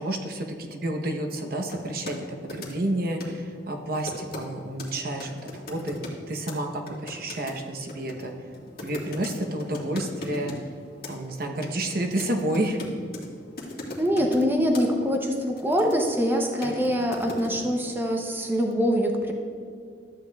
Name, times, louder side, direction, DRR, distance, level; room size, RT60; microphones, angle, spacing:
voice 1, 0.0-2.2 2.5-6.0 6.3-8.3 8.8-10.6 11.1-12.8, right 1 dB, 60° right, 4 dB, 0.9 m, -30 dB
sound 1, 1.7-2.2 2.5-2.9 3.2-3.4 4.1-4.5 4.8-4.9 5.2-6.2 6.5-6.6 6.9-10.6 11.0-11.3 11.6-13.3 13.6-14.5 14.7-14.9 15.4-16.2 16.6-17.9, left 2 dB, 60° left, 1.6 m, -38 dB
voice 2, 14.0-19.3, equal, 10° right, 2 dB, 0.7 m, -24 dB
13.0 x 8.6 x 2.3 m, 2.3 s
head